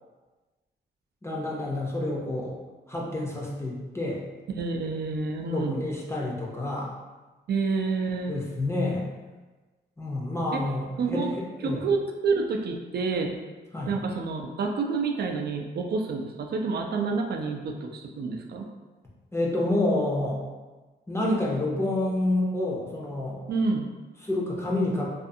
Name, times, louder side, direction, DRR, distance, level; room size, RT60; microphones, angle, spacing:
voice 1, 1.2-2.5 2.9-4.2 5.5-6.9 8.3-9.1 10.0-11.8 13.7-13.9 19.3-20.4 21.1-23.4 24.2-25.1, left 1 dB, 15° left, -4 dB, 0.6 m, -28 dB
voice 2, 4.6-5.8 7.5-8.3 10.5-10.6 11.0-11.3 11.6-13.4 13.9-18.7 23.5-23.9, right 4 dB, 55° right, 3 dB, 0.4 m, -28 dB
2.5 x 2.4 x 2.6 m, 1.2 s
cardioid pair, 75°, 19 cm